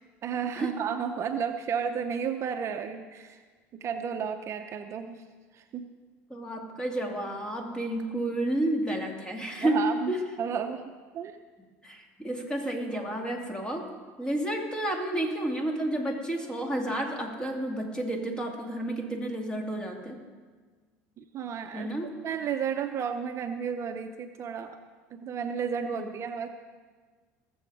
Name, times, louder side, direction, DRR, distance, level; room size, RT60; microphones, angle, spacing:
voice 1, 0.2-3.4 3.8-5.2 5.5-5.9 9.6-10.8 11.1-11.4 21.2-24.8 25.1-26.5, right 7 dB, 45° right, 7 dB, 0.7 m, -32 dB
voice 2, 6.3-9.8 10.1-10.2 11.8-13.9 14.2-20.2 21.7-22.1 25.9-26.0, right 1 dB, 10° left, 1 dB, 2.5 m, -31 dB
19.5 x 7.1 x 4.8 m, 1.5 s
supercardioid pair, 85°, 7 cm